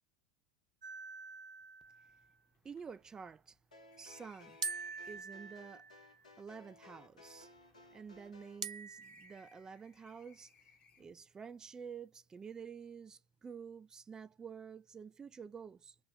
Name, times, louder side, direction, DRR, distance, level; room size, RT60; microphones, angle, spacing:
sound 1, 0.8-2.3 4.6-6.3 8.6-9.7, right 4 dB, 75° right, 0.5 m, -45 dB
sound 2, 1.3-1.4 1.6-1.7 2.1-5.4 6.2-8.6 9.0-11.3, left 7 dB, 35° left, 0.9 m, -68 dB
voice 1, 2.6-3.6 4.0-4.6 5.1-5.9 6.4-7.5 7.9-16.0, right 6 dB, 15° right, 0.3 m, -50 dB
sound 3, 3.7-8.6, left 2 dB, 80° left, 0.8 m, -59 dB
3.5 x 2.1 x 3.6 m
figure-of-eight pair, 85°, 4 cm